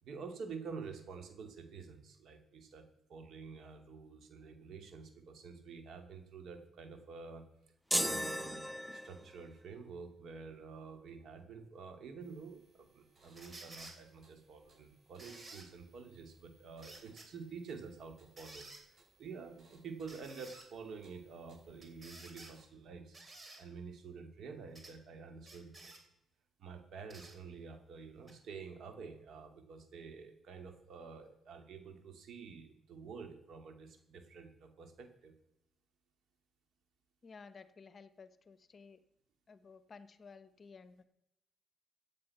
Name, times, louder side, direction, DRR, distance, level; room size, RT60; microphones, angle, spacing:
voice 1, 0.0-2.8 3.1-7.4 7.9-23.2 23.6-25.9 26.6-35.3, right 5 dB, 65° right, 6 dB, 2.4 m, -49 dB
sound 1, 7.9-9.5, equal, ahead, 0.5 m, -35 dB
sound 2, 12.2-22.6, right 3 dB, 45° right, 6.2 m, -68 dB
sound 3, 13.4-14.0 15.2-15.7 16.8-17.3 18.4-18.8 20.1-20.7 21.8-22.5 23.1-23.6 24.8-25.0 25.4-26.0 27.1-27.4 28.3-28.4, right 2 dB, 30° right, 3.0 m, -52 dB
voice 2, 37.2-39.0 39.5-41.0, left 5 dB, 40° left, 14 dB, 0.9 m, -55 dB
15.0 x 8.6 x 5.9 m, 0.86 s
cardioid pair, 90°, 0 cm